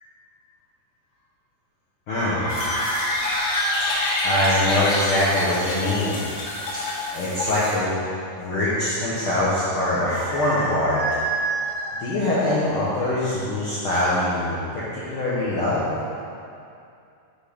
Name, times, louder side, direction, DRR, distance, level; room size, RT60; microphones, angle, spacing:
voice 1, 2.1-6.2 6.7-8.1 8.3-15.9, left 1 dB, 85° left, -9 dB, 1.2 m, -24 dB
sound 1, 2.5-7.8, left 2 dB, 65° left, 1.6 m, -27 dB
6.2 x 5.4 x 5.1 m, 2.5 s
omnidirectional pair, 3.9 m